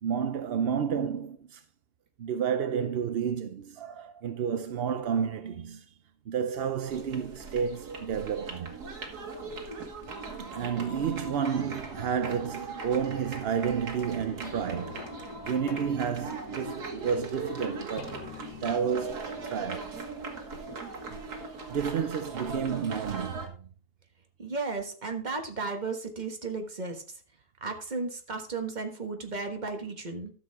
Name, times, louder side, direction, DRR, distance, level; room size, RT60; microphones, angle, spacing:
voice 1, 0.0-1.6 2.2-5.9 6.3-8.8 10.4-20.0 21.1-21.2 21.7-23.7, right 7 dB, 60° right, 0.6 m, -31 dB
sound 1, 6.8-23.5, right 3 dB, 80° right, 2.2 m, -40 dB
sound 2, 13.9-20.7 21.3-21.4, left 7 dB, 80° left, 1.6 m, -48 dB
voice 2, 24.4-27.0 27.6-30.3, right 3 dB, 30° right, 1.5 m, -34 dB
12.5 x 7.2 x 3.5 m
omnidirectional pair, 1.7 m